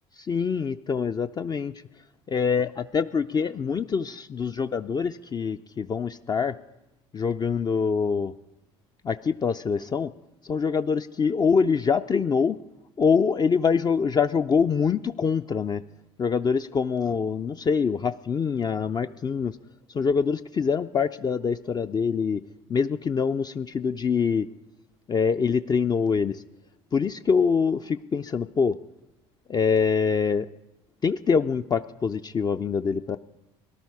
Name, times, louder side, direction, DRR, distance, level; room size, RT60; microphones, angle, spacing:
voice 1, 0.2-1.7 2.3-6.6 7.1-8.3 9.0-10.1 10.4-12.6 13.0-15.8 16.2-19.6 19.9-22.4 22.7-24.5 25.1-26.4 26.9-28.8 29.5-30.5 31.0-33.2, left 5 dB, 30° left, 9 dB, 0.5 m, -24 dB
18.0 x 12.0 x 4.8 m, 0.93 s
hypercardioid pair, 65°, 14 cm